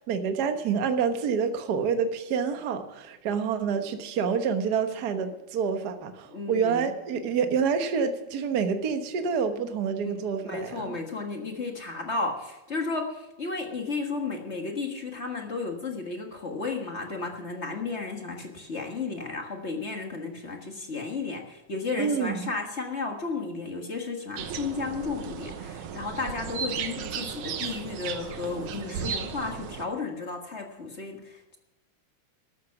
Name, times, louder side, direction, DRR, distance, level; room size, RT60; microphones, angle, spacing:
voice 1, 0.1-10.9 22.0-22.5, right 6 dB, 60° right, 7 dB, 1.0 m, -27 dB
voice 2, 6.3-6.9 10.1-31.6, left 4 dB, 35° left, 2 dB, 1.0 m, -33 dB
sound 1, 24.4-29.8, right 7 dB, 75° right, 2.5 m, -35 dB
13.5 x 13.0 x 5.8 m, 1.0 s
omnidirectional pair, 3.5 m